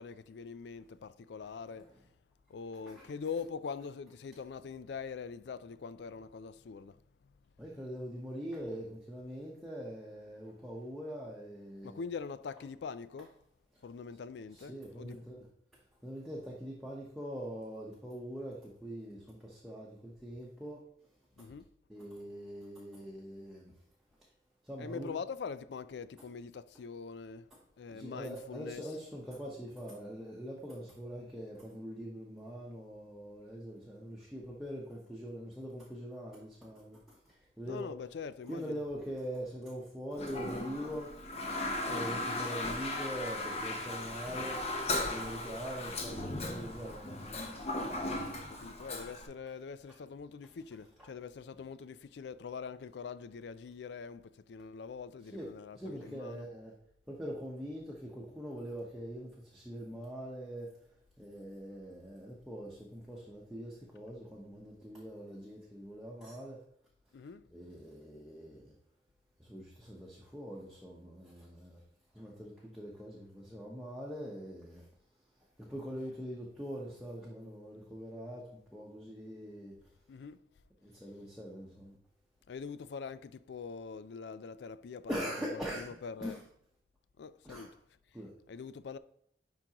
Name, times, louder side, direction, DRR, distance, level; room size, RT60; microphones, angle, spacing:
voice 1, 0.0-1.9 2.5-7.0 11.8-13.3 13.8-15.2 21.4-21.7 24.8-27.5 27.8-28.8 37.7-38.8 48.5-56.4 67.1-67.5 80.1-80.4 82.5-85.3 85.5-86.4 87.2-87.7 88.5-89.0, left 5 dB, 80° left, 0.4 m, -43 dB
voice 2, 7.6-12.0 13.7-13.8 14.5-15.5 15.7-20.8 21.4-21.5 21.9-23.7 24.6-25.1 27.5-27.6 27.9-37.9 38.5-41.4 41.8-44.8 45.0-48.0 51.0-51.1 55.3-56.7 57.1-60.7 61.2-66.6 67.5-68.7 69.4-71.8 72.1-74.9 75.6-79.7 80.8-82.0 85.1-86.4 87.4-87.7 88.1-88.3, equal, ahead, 0.9 m, -43 dB
Toilet flush, 40.1-49.3, left 2 dB, 35° left, 0.8 m, -37 dB
10.5 x 3.8 x 2.9 m
head